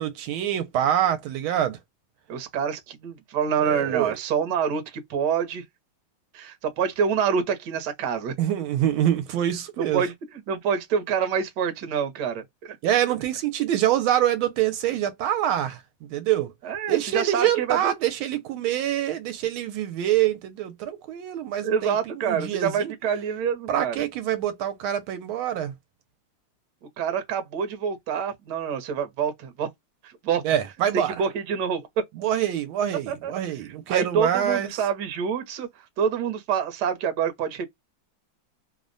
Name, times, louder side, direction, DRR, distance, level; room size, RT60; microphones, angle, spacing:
voice 1, 0.0-1.8 3.6-4.1 8.4-10.0 12.8-15.8 16.1-16.5 16.9-22.9 23.7-25.7 30.4-31.2 32.2-34.7, right 11 dB, 80° right, 1.4 m, -25 dB
voice 2, 2.3-5.6 6.3-8.3 9.8-12.8 16.6-17.9 21.6-24.0 27.0-29.7 30.0-30.4 30.9-32.0 33.1-33.3 33.9-35.7 36.0-37.6, right 7 dB, 65° right, 1.2 m, -27 dB
3.3 x 2.1 x 2.4 m
omnidirectional pair, 2.3 m